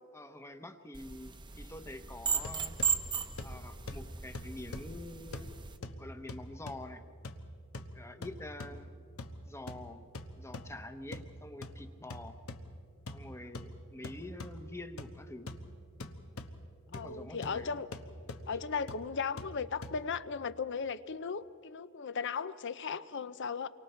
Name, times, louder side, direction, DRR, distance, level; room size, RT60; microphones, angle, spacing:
voice 1, 0.1-2.8 3.4-5.5 6.0-7.0 7.9-9.1 9.4-10.1 10.4-12.3 13.1-15.5 16.9-17.8, left 1 dB, 15° left, 8 dB, 1.0 m, -46 dB
sound 1, 0.9-5.8, right 6 dB, 20° right, 0.9 m, -36 dB
sound 2, 2.2-20.0, left 1 dB, 75° left, 1.2 m, -46 dB
voice 2, 16.9-17.9 18.5-23.7, left 5 dB, 55° left, 14 dB, 0.6 m, -36 dB
28.5 x 24.0 x 4.4 m, 2.2 s
head